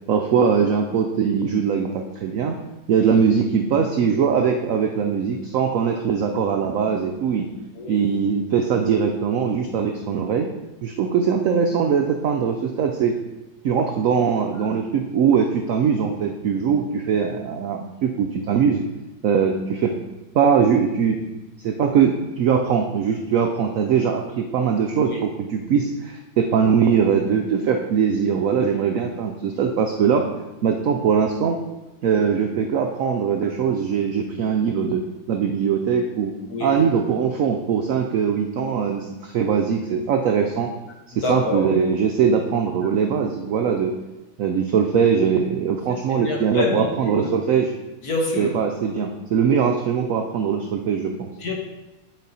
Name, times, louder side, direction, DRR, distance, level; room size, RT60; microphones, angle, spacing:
voice 1, 0.1-2.6 2.9-7.5 7.9-10.5 10.8-13.1 13.6-18.8 19.2-19.9 20.3-21.2 21.6-30.3 30.6-31.6 32.0-36.3 36.6-40.7 41.2-43.9 44.4-47.7 48.4-51.3, right 6 dB, 80° right, 4 dB, 0.7 m, -21 dB
voice 2, 7.8-8.1 25.0-25.2 36.5-36.8 41.2-41.6 46.1-47.3 48.0-48.6 51.4-51.5, left 2 dB, 55° left, -1 dB, 1.7 m, -26 dB
9.2 x 4.2 x 4.0 m, 1.1 s
omnidirectional pair, 2.0 m